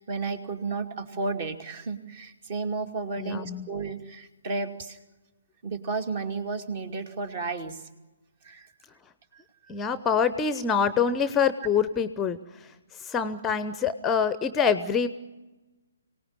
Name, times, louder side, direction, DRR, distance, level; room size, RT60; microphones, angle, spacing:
voice 1, 0.0-5.0 5.6-7.9 8.4-8.7 9.3-9.7, right 3 dB, 40° right, 8 dB, 2.5 m, -33 dB
voice 2, 3.2-3.7 9.7-15.1, left 6 dB, 10° left, 13 dB, 0.8 m, -26 dB
24.5 x 18.5 x 9.6 m, 1.1 s
figure-of-eight pair, 130°, 0 cm